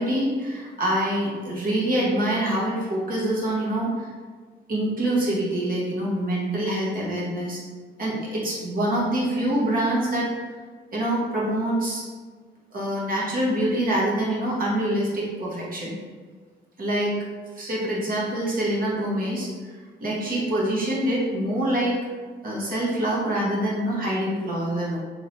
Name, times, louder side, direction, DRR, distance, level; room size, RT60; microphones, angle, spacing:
voice 1, 0.0-4.1 4.7-7.6 8.0-10.3 10.9-12.0 12.7-15.9 16.8-17.2 17.5-19.5 20.0-22.0 22.4-25.0, right 1 dB, 45° right, -5 dB, 1.4 m, -25 dB
3.6 x 3.3 x 2.7 m, 1.5 s
cardioid pair, 90°, 20 cm